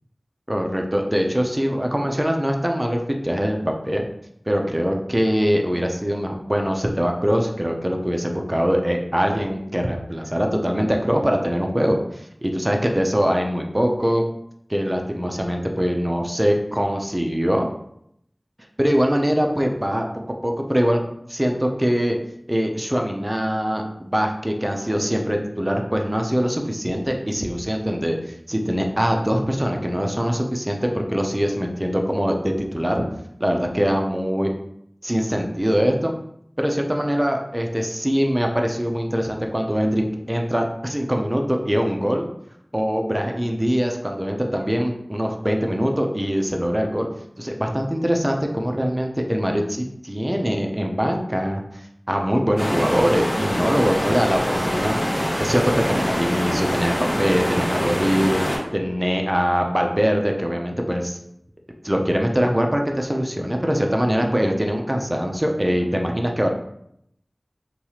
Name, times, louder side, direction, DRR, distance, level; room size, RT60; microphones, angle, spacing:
voice 1, 0.5-4.0 4.5-14.2 14.7-17.7 18.8-20.1 20.4-21.0 21.3-22.2 22.5-33.0 33.4-34.5 35.0-36.1 36.6-42.3 42.7-47.1 47.4-51.6 52.1-54.9 55.4-58.4 58.7-61.2 61.8-66.5, equal, 20° right, 2 dB, 0.4 m, -22 dB
sound 1, 52.6-58.6, equal, 55° left, 1.2 m, -24 dB
3.0 x 2.3 x 2.8 m, 0.74 s
wide cardioid pair, 50°, 0 cm